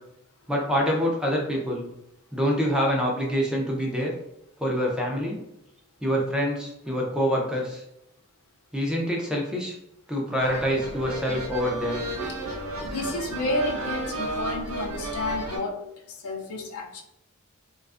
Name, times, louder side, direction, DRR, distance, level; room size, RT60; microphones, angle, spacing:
voice 1, 0.5-1.9 2.3-4.1 4.6-5.4 6.0-7.8 8.7-9.7 10.1-12.0, equal, 5° right, -2 dB, 0.4 m, -26 dB
sound 1, 10.4-15.6, right 1 dB, 90° right, 0.7 m, -32 dB
voice 2, 12.8-17.0, left 2 dB, 85° left, 1 dB, 0.5 m, -31 dB
2.4 x 2.2 x 2.4 m, 0.81 s
head